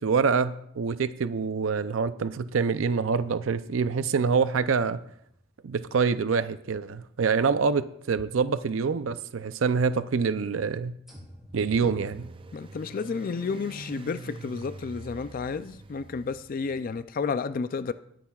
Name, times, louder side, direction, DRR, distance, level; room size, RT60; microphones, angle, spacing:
voice 1, 0.0-5.0 5.6-11.0 11.5-12.3, right 5 dB, 85° right, 0.5 m, -26 dB
sound 1, 3.2-7.4 8.1-8.2 11.1-12.1, equal, ahead, 4.9 m, -53 dB
sound 2, 11.6-17.0, right 3 dB, 25° right, 0.4 m, -45 dB
voice 2, 12.5-17.9, left 5 dB, 45° left, 0.4 m, -31 dB
20.0 x 10.0 x 2.4 m
head